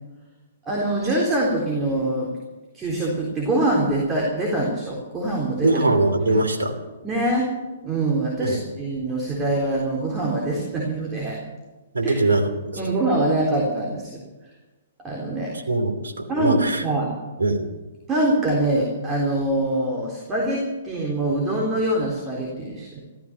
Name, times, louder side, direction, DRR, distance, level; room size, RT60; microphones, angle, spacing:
voice 1, 0.7-2.3 2.7-5.8 7.0-7.5 7.8-11.4 12.0-12.2 12.8-14.2 15.0-15.6 16.3-17.1 18.1-23.0, right 1 dB, 20° right, -2 dB, 3.7 m, -24 dB
voice 2, 5.6-6.7 8.4-8.6 11.9-12.8 15.7-16.8 17.4-17.7, right 2 dB, 75° right, 5 dB, 2.9 m, -22 dB
14.5 x 14.0 x 6.9 m, 1.2 s
figure-of-eight pair, 120°, 0 cm